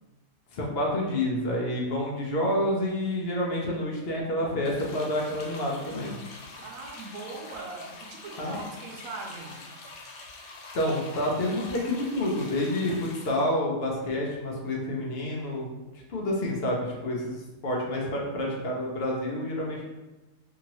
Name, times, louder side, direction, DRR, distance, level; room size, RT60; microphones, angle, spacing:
voice 1, 0.5-6.2 8.4-8.6 10.7-15.7 16.1-19.8, left 1 dB, 55° left, -2 dB, 0.7 m, -28 dB
sound 1, 4.6-13.4, left 3 dB, 85° left, 1.1 m, -45 dB
voice 2, 6.6-9.6, right 3 dB, 80° right, 0 dB, 1.0 m, -40 dB
2.8 x 2.7 x 2.8 m, 1.1 s
omnidirectional pair, 1.4 m